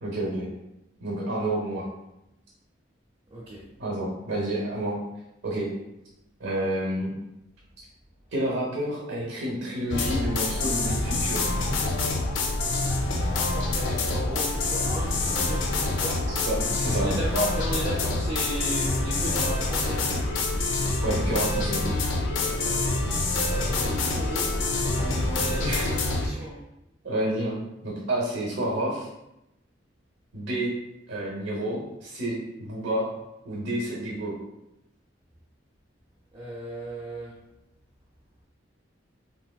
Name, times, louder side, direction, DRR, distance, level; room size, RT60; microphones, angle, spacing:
voice 1, 0.0-0.5 1.0-1.9 3.8-5.0 5.4-5.7 6.4-7.1 8.3-11.5 16.3-17.1 21.0-21.8 25.6-25.9 26.2-26.5 27.0-29.1 30.3-30.7 31.1-33.1 33.4-34.3, right 1 dB, 85° right, -4 dB, 0.8 m, -29 dB
voice 2, 3.3-3.6 13.1-16.2 16.9-20.1 22.4-23.1 23.4-24.5 24.9-26.6 36.3-37.3, equal, 25° right, -7 dB, 0.5 m, -35 dB
sound 1, 9.9-26.3, left 2 dB, 85° left, 0.5 m, -26 dB
Drum, 11.6-12.8 15.4-16.8 19.3-21.0 25.0-25.9, equal, 30° left, 0.4 m, -44 dB
3.4 x 2.9 x 2.3 m, 0.89 s
head